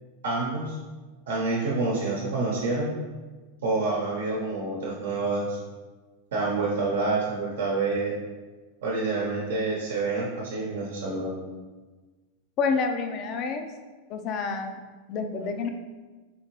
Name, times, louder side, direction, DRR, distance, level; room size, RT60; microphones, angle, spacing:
voice 1, 0.2-0.8 1.3-2.9 3.6-5.6 6.3-8.1 8.8-11.4, right 3 dB, 80° right, -4 dB, 0.9 m, -27 dB
voice 2, 12.6-13.6 14.1-14.8 15.1-15.7, left 4 dB, 45° left, 5 dB, 0.5 m, -28 dB
4.1 x 2.8 x 3.0 m, 1.3 s
hypercardioid pair, 115°, 0 cm